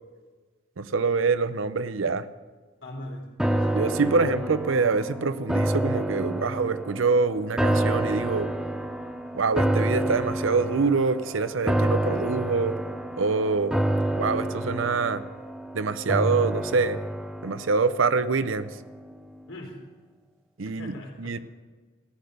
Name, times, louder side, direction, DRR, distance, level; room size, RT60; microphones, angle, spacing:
voice 1, 0.8-2.3 3.7-8.6 9.3-12.7 13.2-13.8 14.2-15.2 15.7-17.0 17.4-18.8 20.6-21.4, right 4 dB, 85° right, 14 dB, 0.7 m, -25 dB
voice 2, 2.8-4.4 19.5-19.8 20.7-21.4, left 1 dB, 75° left, 0 dB, 3.5 m, -41 dB
sound 1, 3.4-18.7 19.1-19.2, right 1 dB, 5° right, 0.5 m, -28 dB
14.5 x 10.5 x 6.6 m, 1.4 s
head